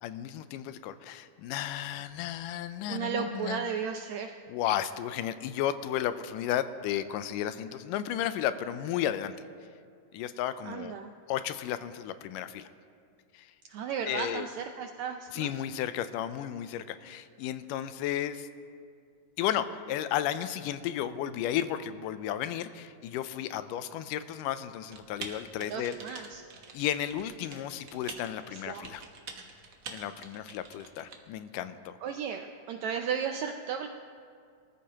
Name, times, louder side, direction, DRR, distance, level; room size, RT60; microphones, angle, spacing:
voice 1, 0.0-3.6 4.5-9.4 10.1-11.0 11.3-12.7 13.3-13.5 14.1-14.5 15.3-18.5 19.4-26.0 26.7-29.0 29.9-31.9, left 11 dB, 85° left, 12 dB, 2.2 m, -33 dB
voice 2, 2.9-4.4 10.6-11.1 13.7-15.5 25.7-26.4 28.5-28.9 32.0-33.9, right 7 dB, 80° right, 5 dB, 1.6 m, -35 dB
Typing, 24.9-31.2, right 5 dB, 55° right, 1.3 m, -46 dB
24.0 x 14.0 x 2.9 m, 2.2 s
omnidirectional pair, 3.8 m